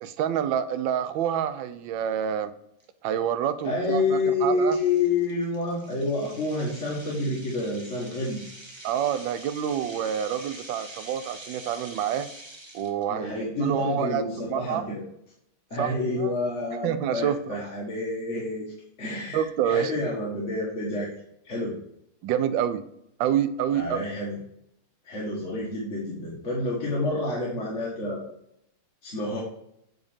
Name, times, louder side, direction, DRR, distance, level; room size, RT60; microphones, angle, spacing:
voice 1, 0.0-2.5 3.0-4.8 8.8-12.3 12.7-14.8 15.8-16.3 16.8-17.6 19.3-20.0 22.2-22.8 23.2-24.0, right 9 dB, 75° right, 12 dB, 1.2 m, -27 dB
sound 1, 2.8-2.9 3.4-3.6 4.1-4.2 4.7-13.0, right 1 dB, 30° right, 0.5 m, -45 dB
voice 2, 3.6-8.4 13.1-15.0 15.7-18.6 19.0-21.1 21.4-21.7 23.7-24.4 25.0-28.2 29.0-29.4, left 2 dB, 35° left, -5 dB, 1.6 m, -28 dB
8.1 x 3.6 x 5.0 m, 0.77 s
omnidirectional pair, 2.4 m